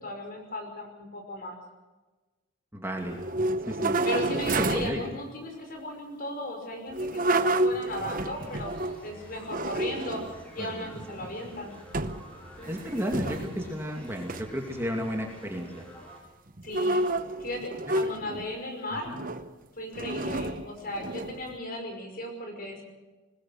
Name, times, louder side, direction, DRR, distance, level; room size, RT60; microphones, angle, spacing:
voice 1, 0.0-1.6 4.0-8.7 9.0-10.2 10.5-11.8 12.6-12.7 16.6-17.0 17.4-19.1 19.8-22.8, left 1 dB, 45° left, 4 dB, 5.5 m, -36 dB
voice 2, 2.7-3.2 3.7-4.0 4.5-5.0 10.6-11.3 12.7-15.8 18.9-19.2 20.0-20.2, equal, 10° right, 1 dB, 2.5 m, -33 dB
sound 1, 3.1-5.0 6.9-9.0 9.5-10.4 10.9-11.5 11.9-12.3 12.5-13.7 14.2-14.4 16.6-18.5 19.1-19.5 19.9-21.5, right 2 dB, 45° right, 0.9 m, -29 dB
sound 2, 8.2-16.2, right 1 dB, 5° left, 6.3 m, -48 dB
21.0 x 20.5 x 6.4 m, 1.2 s
head